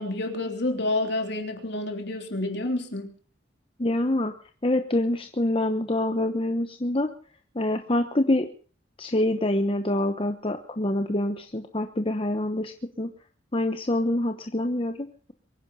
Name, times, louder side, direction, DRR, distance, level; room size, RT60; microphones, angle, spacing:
voice 1, 0.0-3.1, left 2 dB, 60° left, 4 dB, 3.3 m, -29 dB
voice 2, 3.8-4.3 4.6-7.1 7.5-8.5 9.0-13.1 13.5-15.3, left 1 dB, 30° left, 7 dB, 1.0 m, -26 dB
23.5 x 10.5 x 5.5 m, 0.41 s
head